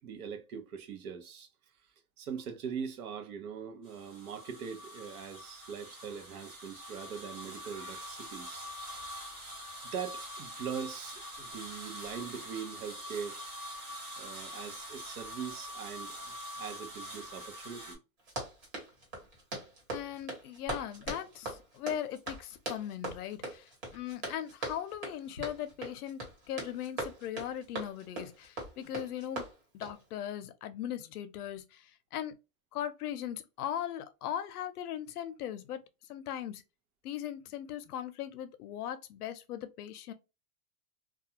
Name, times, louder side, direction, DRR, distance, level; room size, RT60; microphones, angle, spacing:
voice 1, 0.0-1.5 2.2-8.7 9.8-13.4 14.2-18.0, right 7 dB, 70° right, 0.8 m, -41 dB
sound 1, 3.8-17.9, equal, 25° right, 1.1 m, -44 dB
Run, 18.2-30.0, right 2 dB, 40° right, 1.3 m, -41 dB
voice 2, 19.9-26.2 26.5-29.4 29.7-32.3 32.7-35.8 36.1-36.6 37.0-40.1, left 10 dB, 75° left, 0.6 m, -39 dB
sound 2, 21.0-22.0 22.5-22.6 22.8-23.5 24.0-24.3 24.5-24.6 25.2-25.8 26.2-26.3, equal, 10° right, 0.4 m, -54 dB
2.4 x 2.3 x 2.8 m
supercardioid pair, 175°, 45 cm